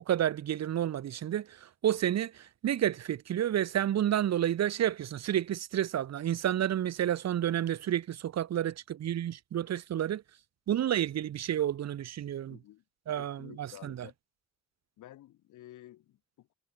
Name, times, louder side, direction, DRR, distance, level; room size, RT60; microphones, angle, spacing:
voice 1, 0.1-10.2 10.7-12.6 13.1-13.9, right 11 dB, 60° right, 1.4 m, -30 dB
voice 2, 12.5-12.8 13.1-14.1 15.0-16.5, left 14 dB, 80° left, 3.8 m, -52 dB
cardioid pair, 90°, 30 cm